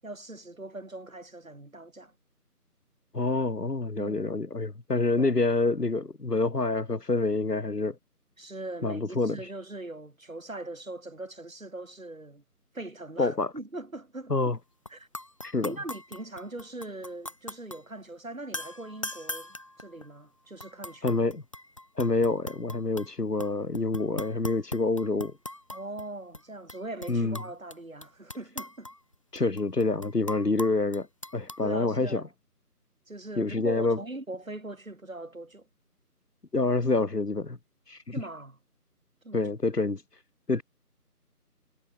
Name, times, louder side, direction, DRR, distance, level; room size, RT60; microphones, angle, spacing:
voice 1, 0.0-2.1 4.0-4.2 5.2-5.3 8.4-12.4 12.7-14.4 14.9-15.1 15.6-21.2 25.7-28.9 29.3-29.5 31.6-32.2 33.1-35.7 38.1-38.6 39.2-39.4, right 2 dB, 55° right, 7.7 m, -41 dB
voice 2, 3.1-8.0 8.8-9.4 13.2-13.5 14.3-14.6 15.5-15.8 21.0-21.4 22.0-25.3 27.1-27.4 29.3-31.1 31.3-32.2 33.4-34.0 36.5-37.6 37.9-38.1 39.3-40.0 40.5-40.6, left 3 dB, 80° left, 1.8 m, -27 dB
sound 1, 14.9-15.0 15.1-17.8 18.5-20.2 20.6-23.1 23.4-26.1 26.3-26.4 26.7-27.7 28.0-31.6, left 1 dB, 20° left, 1.9 m, -40 dB
figure-of-eight pair, 165°, 47 cm